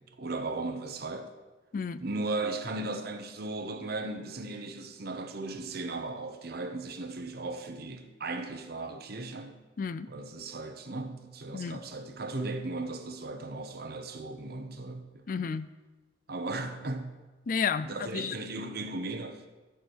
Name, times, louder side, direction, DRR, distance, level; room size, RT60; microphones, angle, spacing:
voice 1, 0.2-1.3 2.0-9.5 10.1-15.2 16.3-17.1 17.8-19.5, right 2 dB, 55° right, 1.0 m, -36 dB
voice 2, 9.8-10.1 11.5-11.8 15.3-15.7 17.5-18.3, left 6 dB, 45° left, 0.4 m, -32 dB
13.5 x 4.6 x 6.4 m
head